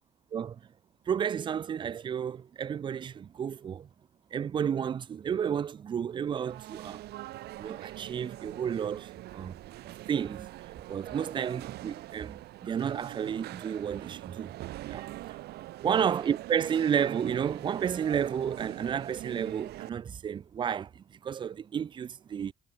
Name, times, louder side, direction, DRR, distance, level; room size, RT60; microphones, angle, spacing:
voice 1, 1.1-3.9 4.3-7.1 7.6-9.6 10.1-10.5 10.9-14.5 14.9-15.1 15.8-22.5, right 8 dB, 30° right, 0.3 m, -31 dB
sound 1, 6.3-19.9, right 16 dB, 70° right, 0.8 m, -43 dB
cardioid pair, 110°, 17 cm